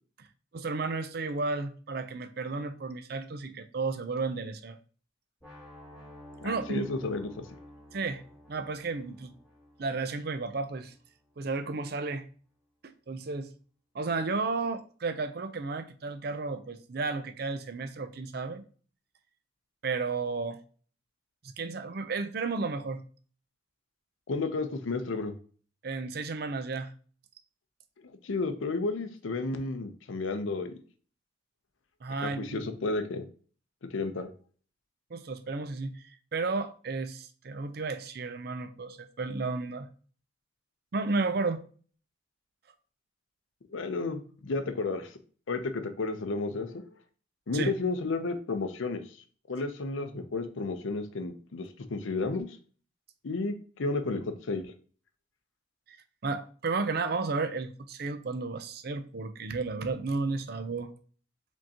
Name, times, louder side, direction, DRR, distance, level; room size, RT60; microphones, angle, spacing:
voice 1, 0.5-4.8 6.4-6.9 7.9-8.2 8.5-9.3 9.8-10.9 11.4-12.2 12.8-13.5 13.9-18.6 19.8-20.6 21.4-23.0 25.8-26.9 32.0-32.6 35.1-36.0 36.3-39.9 40.9-41.6 47.5-47.7 55.9-56.0 56.2-60.9, right 3 dB, 50° right, 0.5 m, -33 dB
sound 1, 5.4-11.3, left 1 dB, 5° right, 1.9 m, -52 dB
voice 2, 6.4-7.3 24.3-25.3 28.2-30.7 32.2-33.3 33.9-34.3 43.7-45.1 45.5-46.8 47.5-49.1 49.5-52.5 53.2-54.7, left 3 dB, 80° left, 0.6 m, -32 dB
5.1 x 3.6 x 2.8 m
head